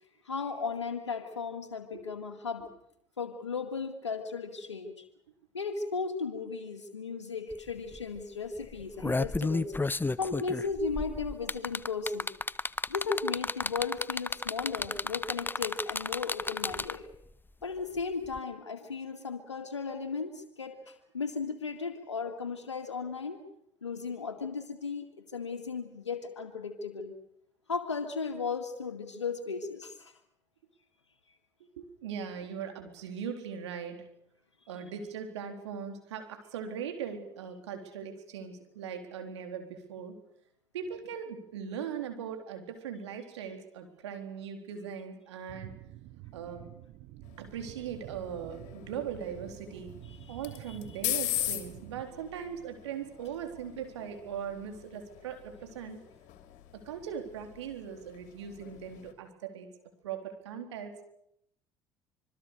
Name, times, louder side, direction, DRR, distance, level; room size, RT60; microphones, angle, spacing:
voice 1, 0.2-2.7 3.2-5.0 5.5-9.7 10.2-12.3 12.9-17.1 17.6-23.4 23.8-27.1 27.7-30.1 50.2-50.4, left 5 dB, 85° left, 4 dB, 2.1 m, -36 dB
sound 1, 7.5-7.6 7.9-8.2 8.7-17.2 18.3-18.4, left 3 dB, 15° left, 0.9 m, -32 dB
voice 2, 31.8-34.1 34.7-40.2 40.7-45.7 46.3-46.7 47.4-49.9 50.3-56.0 56.7-59.7 60.0-61.0, right 7 dB, 75° right, 6 dB, 4.0 m, -40 dB
sound 2, 45.5-52.0, right 16 dB, 60° right, 1.4 m, -49 dB
sound 3, 47.2-59.1, left 14 dB, 60° left, 2.9 m, -41 dB
26.5 x 23.0 x 6.8 m, 0.75 s
figure-of-eight pair, 55°, 15 cm